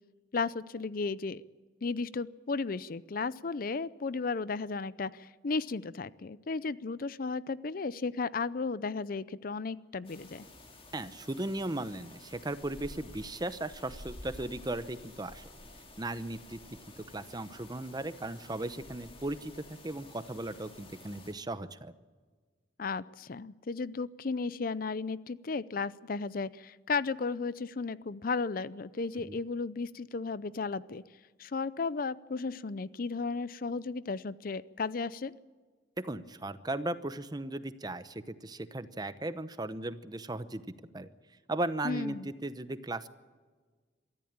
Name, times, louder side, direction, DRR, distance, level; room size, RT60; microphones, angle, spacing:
voice 1, 0.3-1.4 1.8-10.5 22.8-31.0 31.4-35.3 41.8-42.3, left 4 dB, 55° left, 18 dB, 0.6 m, -34 dB
sound 1, 10.0-21.3, left 1 dB, 35° left, 3.5 m, -51 dB
voice 2, 10.9-15.4 16.0-16.6 17.0-21.9 29.2-29.4 36.0-41.1 41.5-43.1, right 2 dB, 25° right, 13 dB, 0.9 m, -37 dB
23.0 x 14.0 x 8.9 m, 1.4 s
head